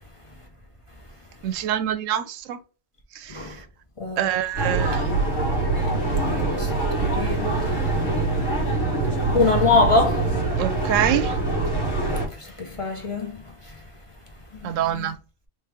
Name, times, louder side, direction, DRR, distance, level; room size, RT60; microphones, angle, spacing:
voice 1, 1.4-2.6 3.2-3.5 4.2-5.1 10.6-11.3 14.6-15.1, right 10 dB, 90° right, 1.0 m, -25 dB
voice 2, 4.0-4.4 6.2-6.7 7.0-7.7 9.3-10.3 12.4-13.3 14.5-15.1, left 3 dB, 30° left, 0.9 m, -24 dB
sound 1, 4.6-12.3, right 3 dB, 85° left, 2.0 m, -24 dB
3.4 x 3.3 x 3.4 m
omnidirectional pair, 1.3 m